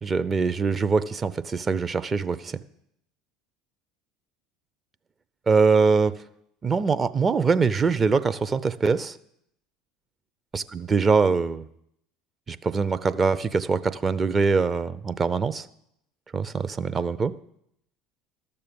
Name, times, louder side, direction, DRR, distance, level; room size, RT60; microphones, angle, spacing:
voice 1, 0.0-2.6 5.5-6.2 6.6-9.1 10.5-11.6 12.5-15.7 16.3-17.3, right 4 dB, 30° right, 13 dB, 0.6 m, -23 dB
12.5 x 6.9 x 7.0 m, 0.76 s
hypercardioid pair, 70°, 0 cm